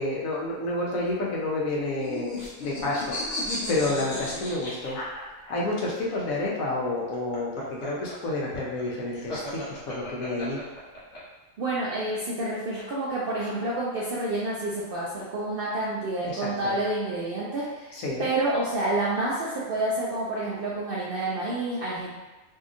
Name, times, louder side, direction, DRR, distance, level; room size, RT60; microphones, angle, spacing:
voice 1, 0.0-5.0 5.3-10.6 16.2-16.7 17.9-18.3, left 2 dB, 85° left, -3 dB, 1.1 m, -30 dB
sound 1, 1.7-5.7 7.0-11.2, left 1 dB, 60° left, 1.1 m, -35 dB
voice 2, 11.6-17.9 18.2-22.1, right 2 dB, 70° right, -6 dB, 0.5 m, -28 dB
2.7 x 2.7 x 2.4 m, 1.1 s
omnidirectional pair, 1.4 m